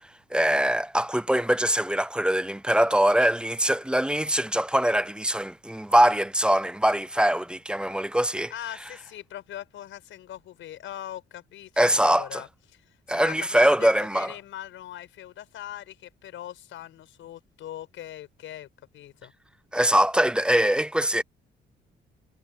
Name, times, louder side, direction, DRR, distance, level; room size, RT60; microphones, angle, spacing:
voice 1, 0.3-8.5 11.8-12.4 13.1-14.3 19.7-21.2, right 1 dB, 5° right, 0.5 m, -22 dB
voice 2, 8.5-19.3, left 12 dB, 80° left, 5.3 m, -41 dB
cardioid pair, 90°, 20 cm